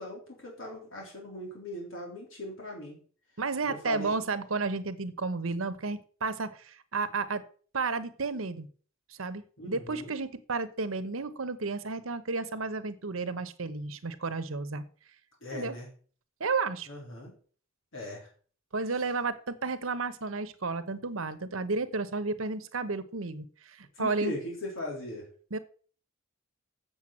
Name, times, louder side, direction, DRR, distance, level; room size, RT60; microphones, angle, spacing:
voice 1, 0.0-3.0 3.6-4.2 9.6-10.1 15.4-15.9 16.9-17.3 17.9-18.3 23.9-25.3, left 1 dB, 70° left, -1 dB, 3.5 m, -39 dB
voice 2, 3.4-7.4 7.7-8.7 9.1-14.8 15.5-15.8 16.4-16.9 18.7-24.3 25.5-25.6, right 4 dB, 80° right, 12 dB, 1.0 m, -32 dB
7.8 x 7.1 x 7.2 m, 0.43 s
head